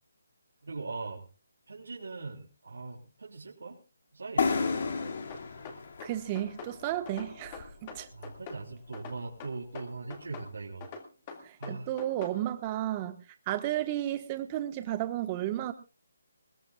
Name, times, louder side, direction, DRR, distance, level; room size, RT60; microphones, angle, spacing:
voice 1, 0.6-1.2 1.7-3.8 4.1-4.6 8.1-10.9 11.6-11.9, right 3 dB, 85° right, -3 dB, 3.6 m, -40 dB
sound 1, 4.4-8.0, left 5 dB, 50° left, 2.4 m, -33 dB
sound 2, 5.3-6.7 7.1-8.6 8.9-10.5 10.8-12.4, left 4 dB, 25° left, 2.2 m, -44 dB
voice 2, 6.0-8.1 11.4-13.2 13.5-15.7, right 13 dB, 20° right, 9 dB, 1.3 m, -33 dB
21.5 x 18.5 x 2.4 m, 0.32 s
hypercardioid pair, 165°, 0 cm